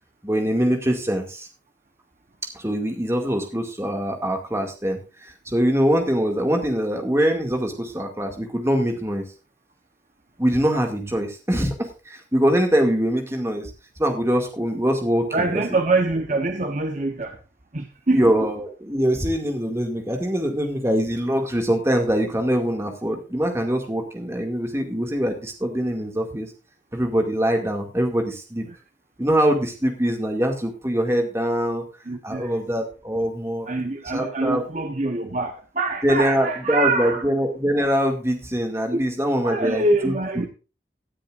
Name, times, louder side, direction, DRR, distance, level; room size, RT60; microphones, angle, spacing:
voice 1, 0.2-1.5 2.5-9.2 10.4-13.7 14.0-15.6 18.1-26.5 26.9-28.7 29.2-31.8 32.2-33.7 34.1-34.7 36.0-40.5, equal, 15° right, 2.3 m, -23 dB
voice 2, 15.3-17.4 17.7-18.5 32.1-32.5 33.7-37.2 38.9-39.0 39.4-40.5, right 2 dB, 40° right, 1.0 m, -24 dB
18.0 x 10.0 x 2.6 m
head